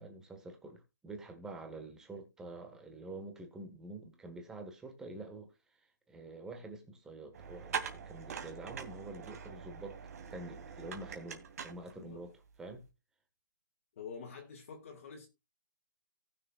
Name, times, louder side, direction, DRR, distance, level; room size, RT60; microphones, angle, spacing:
voice 1, 0.0-5.5 6.1-10.0 10.3-12.3 12.6-12.8, right 2 dB, 5° right, 1.5 m, -47 dB
sound 1, 7.3-12.3, right 7 dB, 45° right, 2.5 m, -43 dB
voice 2, 14.0-15.3, left 6 dB, 40° left, 2.2 m, -47 dB
19.0 x 6.7 x 2.4 m
hypercardioid pair, 165°, 12 cm